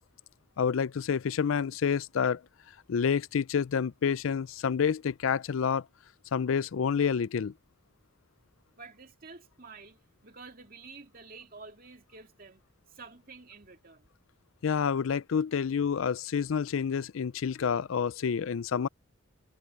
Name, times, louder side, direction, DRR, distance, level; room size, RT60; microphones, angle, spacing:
voice 1, 0.6-2.4 2.9-5.8 6.3-7.5 14.6-18.9, left 6 dB, 80° left, 0.4 m, -28 dB
voice 2, 8.8-12.6 12.9-14.1, right 4 dB, 45° right, 2.6 m, -50 dB
head